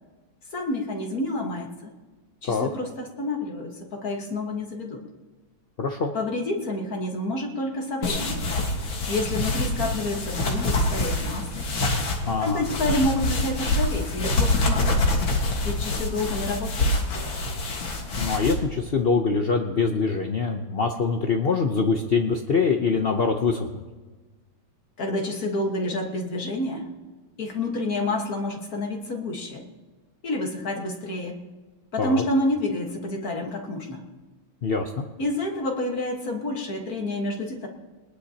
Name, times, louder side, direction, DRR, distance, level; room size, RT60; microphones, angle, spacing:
voice 1, 0.5-1.9 2.4-5.0 6.1-8.5 9.1-11.7 12.4-15.3 15.6-17.0 25.0-26.9 27.4-29.6 30.2-31.4 31.9-34.1 35.2-37.7, left 1 dB, 50° left, 2 dB, 1.9 m, -29 dB
voice 2, 5.8-6.1 12.3-12.6 18.2-23.8 32.0-32.2 34.6-35.1, left 4 dB, 65° left, 3 dB, 0.5 m, -24 dB
sound 1, 8.0-18.5, left 2 dB, 80° left, 2.5 m, -26 dB
21.0 x 20.0 x 2.9 m, 1.3 s
omnidirectional pair, 2.1 m